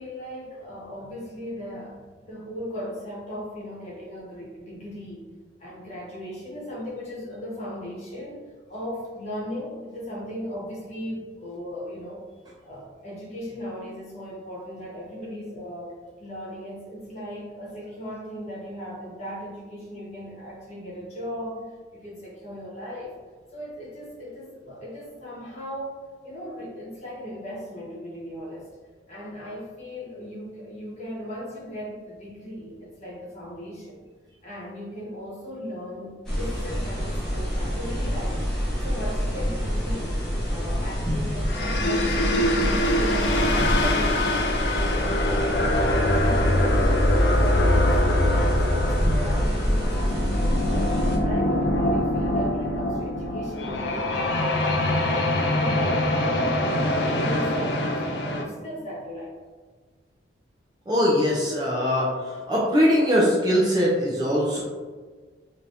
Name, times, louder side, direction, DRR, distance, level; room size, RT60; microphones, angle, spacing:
voice 1, 0.0-5.3 5.6-12.2 12.6-15.9 16.2-21.6 21.9-23.1 23.5-28.7 29.1-34.0 34.4-38.4 38.8-40.1 40.4-50.9 51.2-59.3, equal, 35° left, -7 dB, 1.1 m, -37 dB
sound 1, 36.2-51.2, equal, 5° left, 0.9 m, -26 dB
sound 2, 41.5-58.4, left 1 dB, 60° left, 0.4 m, -24 dB
voice 2, 60.9-64.6, equal, 20° right, -5 dB, 0.5 m, -22 dB
3.4 x 2.7 x 2.6 m, 1.4 s
head